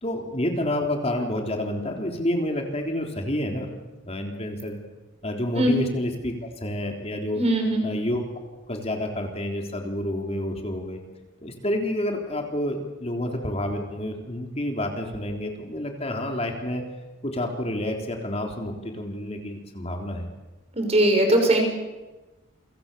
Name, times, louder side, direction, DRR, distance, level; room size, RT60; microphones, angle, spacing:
voice 1, 0.0-3.7 4.0-4.8 5.2-7.4 7.8-8.2 8.7-11.0 11.4-16.8 17.2-20.3, left 1 dB, 35° left, 2 dB, 3.7 m, -29 dB
voice 2, 7.4-7.8 20.7-21.6, right 1 dB, 35° right, 4 dB, 6.4 m, -20 dB
29.5 x 25.5 x 7.0 m, 1.1 s
head